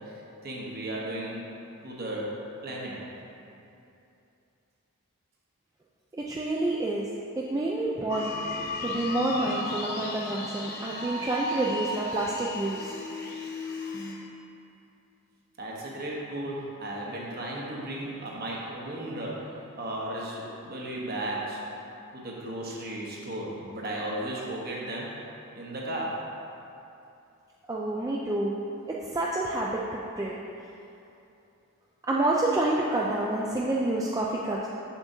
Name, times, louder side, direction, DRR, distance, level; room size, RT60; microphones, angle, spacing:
voice 1, 0.0-1.4 1.8-2.3 2.6-3.0 15.6-21.6 22.1-25.1 25.5-26.2, right 1 dB, 45° right, -3 dB, 1.0 m, -35 dB
voice 2, 6.1-7.1 7.4-8.3 8.8-12.9 27.7-28.6 28.9-30.4 32.1-34.7, right 2 dB, 15° right, -4 dB, 0.3 m, -28 dB
sound 1, 8.1-14.1, left 1 dB, 45° left, 0.9 m, -35 dB
7.5 x 6.9 x 2.7 m, 2.7 s
head